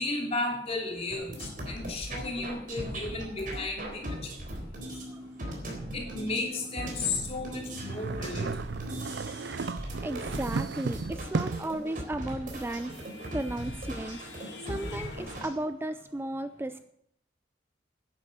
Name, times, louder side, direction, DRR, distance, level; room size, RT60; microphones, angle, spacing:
voice 1, 0.0-4.2 5.9-8.5, left 2 dB, 35° left, 1 dB, 3.2 m, -34 dB
sound 1, 1.1-15.5, right 1 dB, 50° right, 3.8 m, -39 dB
sound 2, 7.7-11.8, right 4 dB, 70° right, 0.5 m, -34 dB
voice 2, 9.5-13.0 13.3-14.3 14.6-16.8, right 1 dB, 15° right, 10 dB, 0.4 m, -35 dB
sound 3, 11.8-15.4, left 3 dB, 90° left, 2.5 m, -47 dB
11.5 x 10.0 x 6.8 m, 0.70 s
head